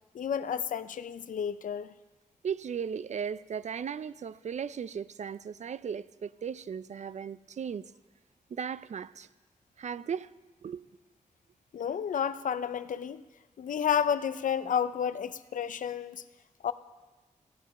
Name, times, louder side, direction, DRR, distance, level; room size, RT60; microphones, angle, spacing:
voice 1, 0.1-1.9 11.7-13.2 13.6-16.2 16.6-16.7, left 8 dB, 80° left, 0.5 m, -31 dB
voice 2, 2.4-7.9 8.5-9.3 9.8-10.3 10.6-10.8, right 7 dB, 60° right, 0.4 m, -36 dB
16.0 x 11.0 x 5.5 m
wide cardioid pair, 95°, 13 cm